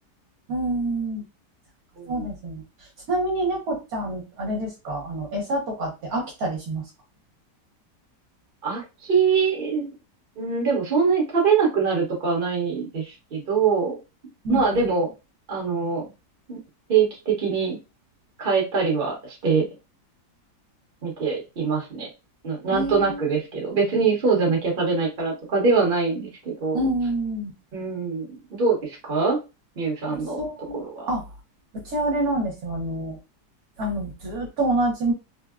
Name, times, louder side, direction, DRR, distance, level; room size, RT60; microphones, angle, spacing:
voice 1, 0.5-1.2 2.1-2.6 3.1-6.8 14.4-14.9 22.7-23.4 26.7-27.5 30.3-31.2 31.8-33.2 33.8-35.1, right 1 dB, 65° right, 0 dB, 1.3 m, -27 dB
voice 2, 2.0-2.3 8.6-9.9 10.4-14.0 14.5-15.1 15.5-16.1 16.5-16.6 16.9-17.8 18.4-19.7 21.0-22.1 22.4-26.9 27.7-29.4 29.8-30.4 30.7-30.9, right 5 dB, 35° right, -1 dB, 1.1 m, -23 dB
3.5 x 2.1 x 2.3 m, 0.27 s
omnidirectional pair, 1.8 m